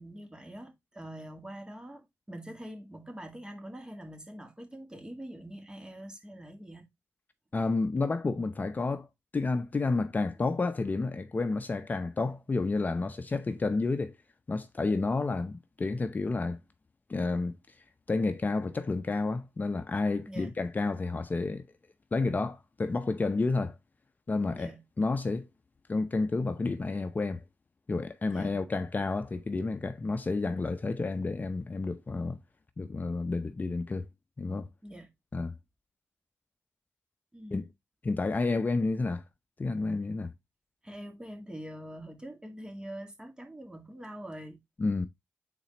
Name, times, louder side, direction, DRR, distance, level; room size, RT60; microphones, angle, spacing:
voice 1, 0.0-6.9 20.3-20.5 24.5-24.8 28.3-28.6 34.8-35.1 37.3-37.7 40.8-44.6, right 1 dB, 15° right, 2.0 m, -44 dB
voice 2, 7.5-9.1 9.3-14.2 14.5-16.6 17.1-17.6 18.1-21.7 22.1-23.8 24.3-24.7 25.0-25.5 25.9-27.4 27.9-32.4 32.8-34.1 34.4-34.7 35.3-35.5 37.5-37.7 38.0-39.2 39.6-40.3 44.8-45.1, left 3 dB, 35° left, 0.7 m, -30 dB
8.2 x 4.3 x 3.0 m
cardioid pair, 75°, 5 cm